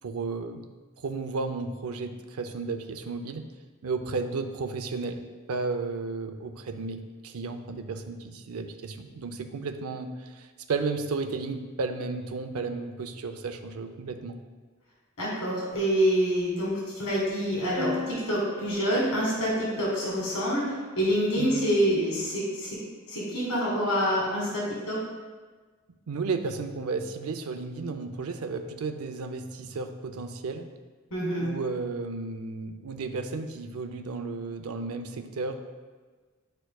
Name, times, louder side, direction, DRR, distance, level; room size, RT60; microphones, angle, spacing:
voice 1, 0.0-0.7 1.0-3.5 3.8-5.2 5.5-14.4 21.3-21.6 26.1-30.7 31.4-35.6, right 4 dB, 85° right, 7 dB, 0.5 m, -33 dB
voice 2, 15.2-22.8 23.1-25.0 31.1-31.5, equal, 90° left, -5 dB, 1.9 m, -27 dB
sound 1, 17.8-21.5, left 3 dB, 15° left, 0.9 m, -40 dB
10.5 x 4.4 x 2.3 m, 1.4 s
head